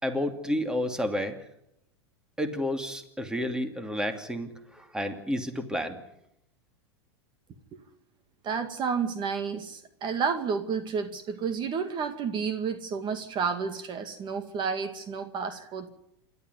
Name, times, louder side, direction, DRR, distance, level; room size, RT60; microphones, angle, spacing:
voice 1, 0.0-1.4 2.4-6.0, left 1 dB, 5° right, 7 dB, 2.7 m, -30 dB
voice 2, 8.4-15.9, right 6 dB, 35° right, 8 dB, 2.2 m, -31 dB
27.5 x 12.5 x 9.8 m, 0.80 s
hypercardioid pair, 110°, 14 cm